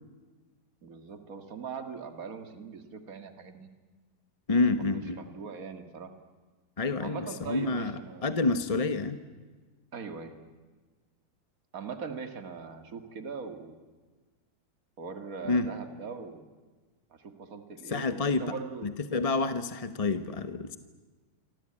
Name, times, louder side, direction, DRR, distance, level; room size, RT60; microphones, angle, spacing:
voice 1, 0.8-3.7 4.5-6.1 7.0-8.3 9.9-10.4 11.7-13.8 15.0-16.4 17.1-18.9, right 5 dB, 55° right, 8 dB, 2.4 m, -41 dB
voice 2, 4.5-5.2 6.8-7.9 8.2-9.2 15.4-15.7 17.9-18.5 18.8-20.8, left 3 dB, 25° left, 11 dB, 1.0 m, -28 dB
27.5 x 24.5 x 8.8 m, 1.4 s
omnidirectional pair, 1.8 m